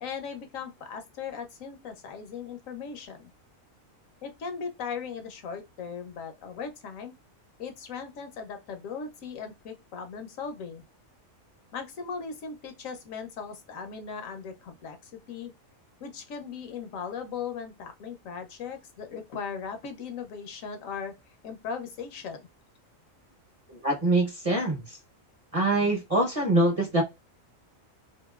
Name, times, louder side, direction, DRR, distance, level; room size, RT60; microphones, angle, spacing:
voice 1, 0.0-3.3 4.2-7.1 7.6-10.8 11.7-15.5 16.0-21.1 21.4-22.5, left 6 dB, 75° left, 1.1 m, -38 dB
voice 2, 23.7-25.0 25.5-27.0, right 1 dB, 30° right, 0.8 m, -24 dB
2.9 x 2.6 x 2.3 m
omnidirectional pair, 1.4 m